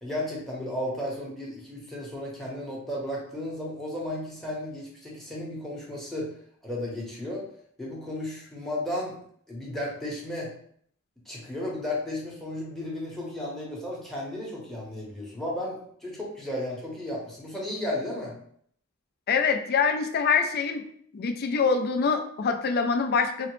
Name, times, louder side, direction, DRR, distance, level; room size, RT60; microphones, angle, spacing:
voice 1, 0.0-6.3 6.6-7.4 7.8-9.2 9.5-10.5 11.3-18.3, left 1 dB, ahead, -3 dB, 0.8 m, -34 dB
voice 2, 19.3-20.8 21.1-23.5, left 5 dB, 45° left, 6 dB, 0.4 m, -25 dB
3.8 x 2.0 x 3.0 m, 0.63 s
head